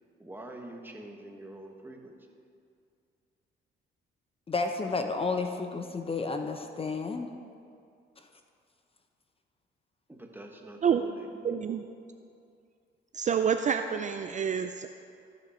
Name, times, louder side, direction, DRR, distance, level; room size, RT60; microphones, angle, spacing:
voice 1, 0.2-2.1 10.1-11.8, right 1 dB, 10° right, 2 dB, 1.3 m, -45 dB
voice 2, 4.5-7.3, left 4 dB, 30° left, 5 dB, 0.7 m, -31 dB
voice 3, 11.4-11.8 13.1-14.9, right 7 dB, 40° right, 7 dB, 0.4 m, -28 dB
14.0 x 6.0 x 4.4 m, 2.5 s
cardioid pair, 90°, 20 cm